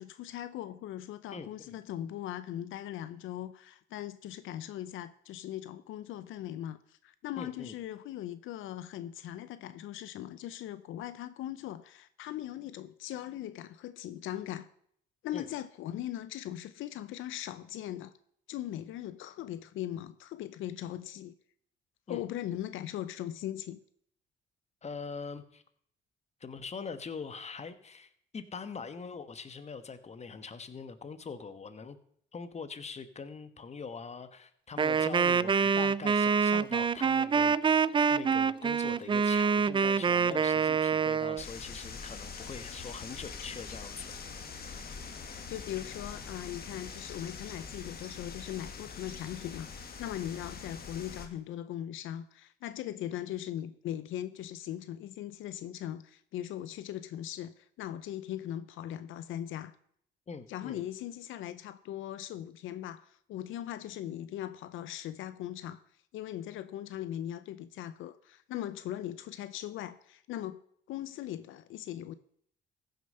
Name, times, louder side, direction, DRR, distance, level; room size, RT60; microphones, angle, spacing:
voice 1, 0.0-14.7 15.2-18.1 18.5-21.3 22.1-23.8 45.5-59.7 60.5-65.8 66.1-70.6 70.9-72.1, left 12 dB, 85° left, 0.6 m, -39 dB
voice 2, 1.3-1.7 7.4-7.8 15.3-15.5 22.1-22.2 24.8-25.6 26.4-32.0 32.3-37.6 38.1-44.7 60.3-60.8, left 5 dB, 35° left, 1.2 m, -43 dB
Wind instrument woodwind instrument, 34.8-41.4, right 6 dB, 25° right, 0.4 m, -26 dB
sound 1, 41.4-51.3, left 5 dB, 50° left, 1.6 m, -44 dB
15.0 x 6.7 x 5.4 m
cardioid pair, 90°, 20 cm